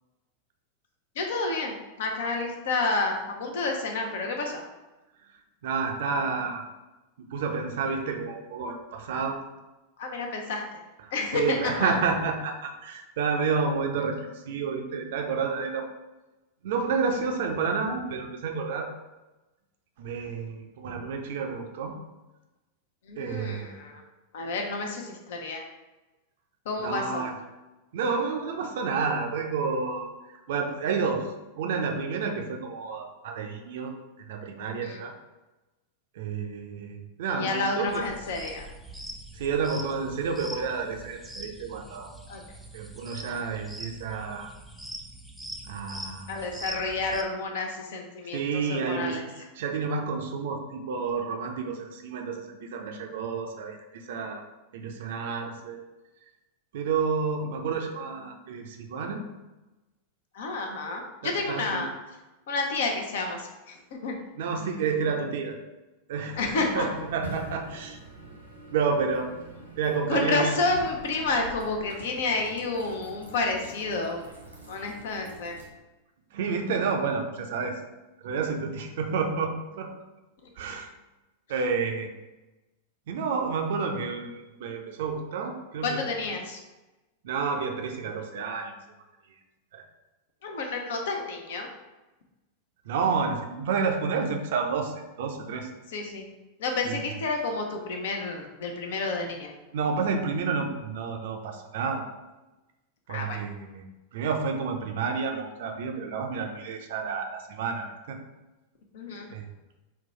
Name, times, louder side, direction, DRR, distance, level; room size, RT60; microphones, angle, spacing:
voice 1, 1.2-4.6 10.0-10.6 11.1-12.0 23.1-24.0 24.3-25.6 26.7-27.3 34.7-35.0 37.3-38.7 42.3-42.4 46.3-49.2 60.3-61.9 62.5-64.1 66.4-66.9 70.1-74.2 74.7-75.5 85.8-86.6 90.4-91.7 95.9-96.3 96.6-99.5 103.1-103.4 108.9-109.3, left 3 dB, 55° left, 2 dB, 0.7 m, -30 dB
voice 2, 5.6-6.6 7.3-9.4 11.0-15.9 16.6-18.9 20.0-22.0 23.2-23.8 26.8-27.3 27.9-30.1 30.5-31.3 31.6-33.9 34.2-35.1 36.2-38.0 39.3-42.1 42.7-44.5 45.7-46.4 48.3-49.2 49.6-54.4 54.7-55.8 56.7-59.2 61.2-61.8 64.4-65.6 66.1-68.0 68.7-69.3 69.8-70.6 76.3-77.8 78.2-79.9 80.6-80.9 81.5-82.1 83.1-86.0 87.2-88.7 89.7-89.8 92.9-95.7 96.8-97.0 99.7-102.0 103.1-103.8 104.1-108.2 109.3-109.5, right 5 dB, 55° right, 4 dB, 0.5 m, -30 dB
sound 1, 37.9-47.2, right 1 dB, ahead, 0.4 m, -43 dB
sound 2, 66.3-75.7, right 2 dB, 90° right, 0.8 m, -44 dB
3.9 x 2.3 x 4.0 m, 1.1 s
figure-of-eight pair, 90°, 0 cm